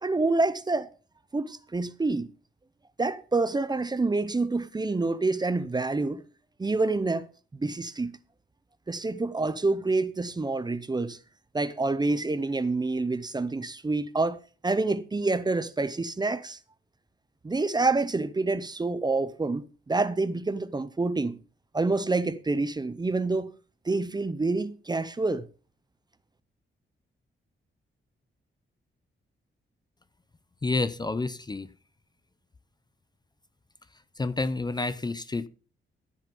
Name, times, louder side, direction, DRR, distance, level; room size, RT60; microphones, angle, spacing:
voice 1, 0.0-0.9 1.3-2.3 3.0-6.2 6.6-8.2 8.9-11.2 11.5-16.6 17.4-21.4 21.7-23.5 23.8-25.5, right 3 dB, 20° right, 0.7 m, -27 dB
voice 2, 30.6-31.7 34.2-35.5, left 3 dB, 20° left, 0.6 m, -29 dB
14.5 x 6.5 x 5.3 m
wide cardioid pair, 140°, 20 cm